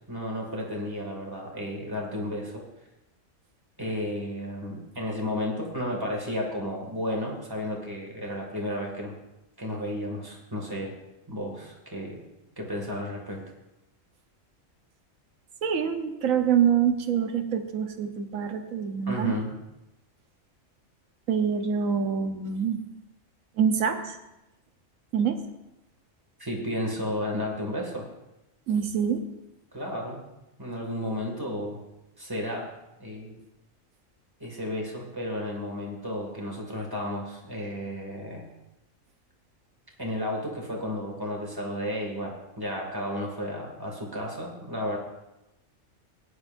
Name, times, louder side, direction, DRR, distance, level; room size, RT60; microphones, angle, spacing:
voice 1, 0.1-2.7 3.8-9.2 9.6-10.9 11.3-12.2 12.6-13.4 19.1-19.5 26.4-28.1 29.7-30.2 30.6-31.8 32.2-32.7 33.0-33.4 34.4-38.5 40.0-45.0, left 1 dB, 15° right, -1 dB, 2.4 m, -33 dB
voice 2, 15.6-19.3 21.3-22.8 23.6-24.2 25.1-25.4 28.7-29.2, right 7 dB, 90° right, 7 dB, 1.4 m, -25 dB
17.0 x 10.0 x 2.6 m, 0.94 s
omnidirectional pair, 1.4 m